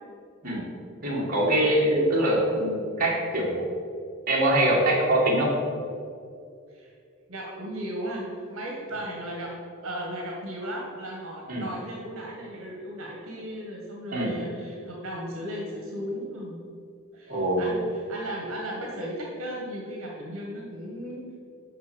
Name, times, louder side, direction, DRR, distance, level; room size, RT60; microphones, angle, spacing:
voice 1, 1.0-3.7 4.3-5.5 11.5-11.6 14.1-14.4 17.3-17.8, right 1 dB, 40° right, -4 dB, 2.1 m, -23 dB
voice 2, 7.3-9.5 9.8-16.6 17.1-21.2, equal, 70° right, -2 dB, 1.6 m, -36 dB
6.7 x 5.8 x 7.0 m, 2.3 s
head